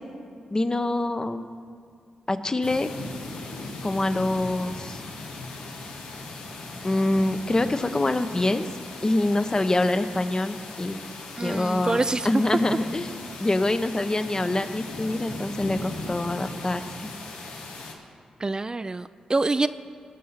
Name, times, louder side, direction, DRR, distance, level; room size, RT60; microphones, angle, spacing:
voice 1, 0.5-1.5 2.3-2.9 3.8-5.0 6.8-8.6 9.0-11.0 11.4-13.1 13.4-17.1, left 2 dB, 30° left, 9 dB, 0.8 m, -25 dB
sound 1, 2.6-17.9, left 2 dB, 90° left, 1.5 m, -38 dB
voice 2, 11.4-12.3 18.4-19.7, right 3 dB, 30° right, 12 dB, 0.4 m, -26 dB
18.5 x 6.4 x 5.7 m, 2.2 s
supercardioid pair, 50°, 2 cm